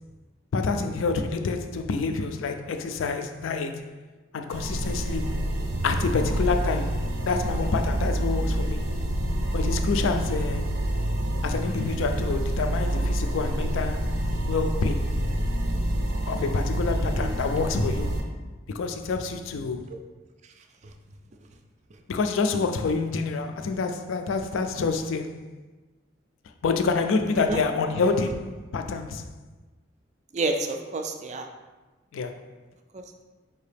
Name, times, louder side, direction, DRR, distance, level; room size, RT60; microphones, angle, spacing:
voice 1, 0.5-3.9 4.3-5.4 5.8-8.8 9.5-10.7 11.4-14.1 14.5-15.1 16.3-18.1 18.7-19.8 22.1-25.5 26.6-29.3 32.1-32.4, left 4 dB, 75° left, 0.3 m, -27 dB
sound 1, 4.5-18.2, right 1 dB, 90° right, 0.6 m, -27 dB
voice 2, 27.5-27.8 30.3-31.5 32.9-33.2, right 2 dB, 35° right, 0.3 m, -30 dB
4.7 x 2.7 x 3.3 m
head